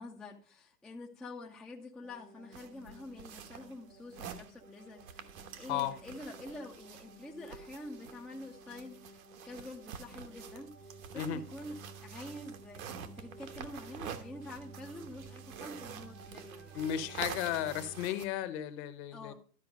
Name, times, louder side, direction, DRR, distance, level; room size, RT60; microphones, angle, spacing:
voice 1, 0.0-5.3 5.6-10.8 11.1-17.2 19.1-19.3, left 2 dB, ahead, 0.5 m, -47 dB
sound 1, 2.0-18.1, right 3 dB, 85° right, 3.6 m, -53 dB
sound 2, 2.5-18.3, right 8 dB, 60° right, 1.2 m, -48 dB
voice 2, 16.7-19.3, left 11 dB, 45° left, 1.1 m, -34 dB
12.5 x 4.5 x 5.2 m
hypercardioid pair, 135°, 47 cm